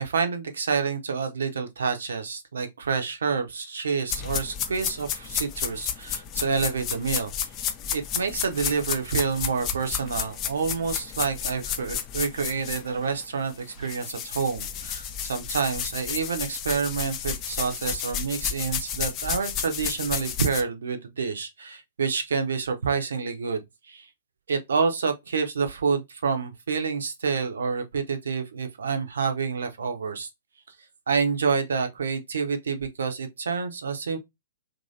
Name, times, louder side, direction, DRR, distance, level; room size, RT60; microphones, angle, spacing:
voice 1, 0.0-7.3 7.9-24.1 24.5-30.3 31.1-34.2, right 5 dB, 65° right, 0.7 m, -28 dB
sound 1, 4.1-13.2 13.5-20.6, left 8 dB, 30° left, 0.5 m, -32 dB
3.0 x 2.6 x 2.6 m
figure-of-eight pair, 110°, 0 cm